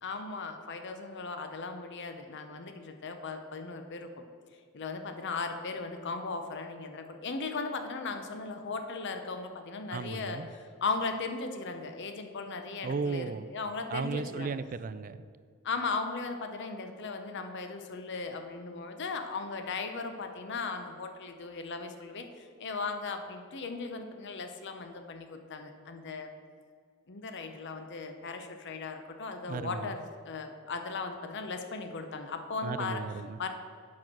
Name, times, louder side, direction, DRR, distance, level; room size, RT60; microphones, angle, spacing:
voice 1, 0.0-4.1 4.7-14.6 15.6-26.3 27.1-33.0 33.4-33.5, left 4 dB, 50° left, 6 dB, 0.7 m, -37 dB
voice 2, 9.9-10.5 12.8-13.5 13.9-15.2 29.5-29.9 32.6-33.4, right 4 dB, 40° right, 13 dB, 0.3 m, -35 dB
7.5 x 6.1 x 6.0 m, 2.1 s
head